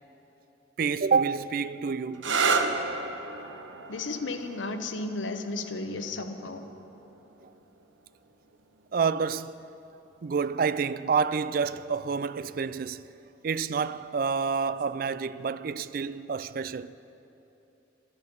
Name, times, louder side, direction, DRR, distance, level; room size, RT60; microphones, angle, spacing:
voice 1, 0.8-2.3 8.9-9.6 10.2-13.1 13.4-16.9, right 5 dB, 50° right, 0.3 m, -28 dB
sound 1, 2.1-9.6 10.6-11.1 14.6-15.0, right 4 dB, 85° right, 0.8 m, -33 dB
voice 2, 3.9-6.7, left 3 dB, 90° left, 0.9 m, -34 dB
12.5 x 12.0 x 7.0 m
head